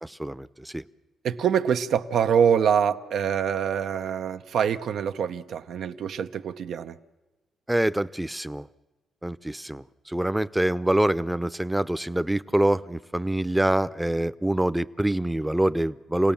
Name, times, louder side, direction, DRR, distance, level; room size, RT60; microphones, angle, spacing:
voice 1, 0.0-0.8 7.7-8.7 9.2-16.3, right 1 dB, 10° right, 0.7 m, -25 dB
voice 2, 1.2-6.9, right 7 dB, 70° right, 0.9 m, -25 dB
28.0 x 17.5 x 7.2 m
cardioid pair, 70°, 0 cm